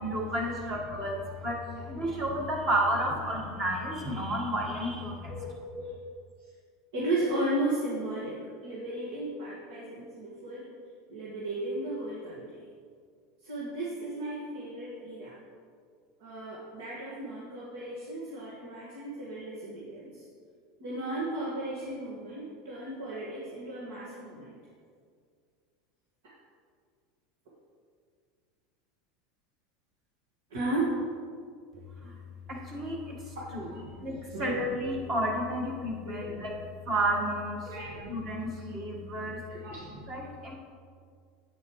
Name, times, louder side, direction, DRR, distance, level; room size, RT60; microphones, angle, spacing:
voice 1, 0.0-5.3 32.0-32.2 32.5-36.5 36.8-39.4 39.8-40.6, right 1 dB, 30° right, -1 dB, 1.7 m, -32 dB
voice 2, 5.3-5.9 6.9-10.7 11.1-12.7 13.4-15.4 16.2-20.2 20.8-24.6 30.5-31.0 33.4-33.8 34.3-34.7 36.1-36.3 37.7-38.0 39.5-39.9, right 1 dB, 80° right, -6 dB, 1.9 m, -35 dB
9.1 x 8.8 x 3.2 m, 2.1 s
supercardioid pair, 155°, 0 cm